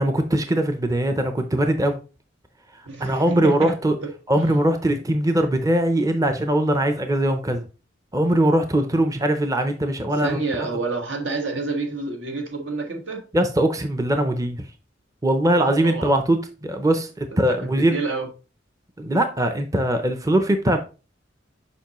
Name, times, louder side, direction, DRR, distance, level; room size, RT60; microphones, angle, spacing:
voice 1, 0.0-2.0 3.0-4.0 4.3-7.6 8.1-10.7 13.3-14.7 15.2-18.0 19.0-20.8, right 1 dB, 20° right, 0.5 m, -21 dB
voice 2, 2.8-3.7 4.0-4.1 10.2-13.2 15.8-16.1 17.6-18.3, right 3 dB, 80° right, 1.5 m, -28 dB
6.9 x 5.3 x 3.0 m
head